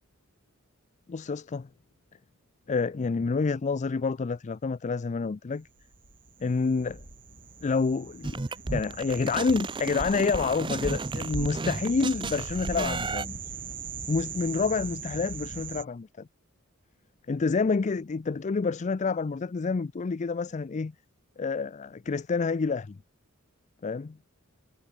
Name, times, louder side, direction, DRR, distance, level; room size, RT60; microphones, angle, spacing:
voice 1, 1.1-1.7 2.7-5.7 6.4-7.0 7.6-8.4 8.7-13.3 14.1-16.3 17.3-20.9 21.4-23.0 23.8-24.2, left 4 dB, 35° left, 0.4 m, -28 dB
sound 1, 5.7-15.8, right 6 dB, 40° right, 3.3 m, -40 dB
sound 2, 8.2-13.2, right 3 dB, 25° right, 0.5 m, -33 dB
head